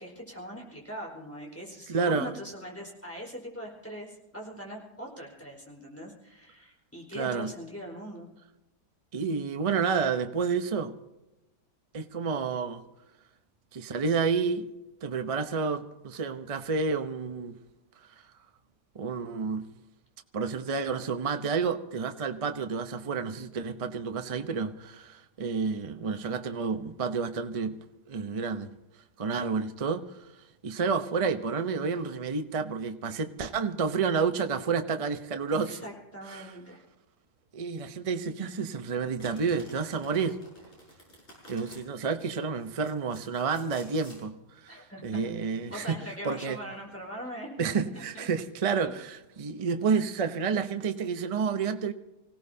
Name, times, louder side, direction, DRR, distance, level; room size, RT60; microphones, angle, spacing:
voice 1, 0.0-8.3 35.7-36.8 44.7-45.2 45.7-48.3, equal, 10° left, 4.6 m, -41 dB
voice 2, 1.9-2.3 7.1-7.5 9.1-10.9 11.9-12.8 13.7-14.7 15.0-17.6 18.0-18.1 18.9-19.7 20.3-27.8 28.1-28.7 29.2-30.0 30.6-35.8 36.3-36.5 37.5-40.4 41.5-46.0 46.2-46.6 47.6-51.9, right 5 dB, 35° right, 0.6 m, -30 dB
Domestic sounds home sounds, 39.2-41.8 42.6-44.2, left 1 dB, 40° left, 7.3 m, -52 dB
26.0 x 17.0 x 2.8 m
omnidirectional pair, 1.8 m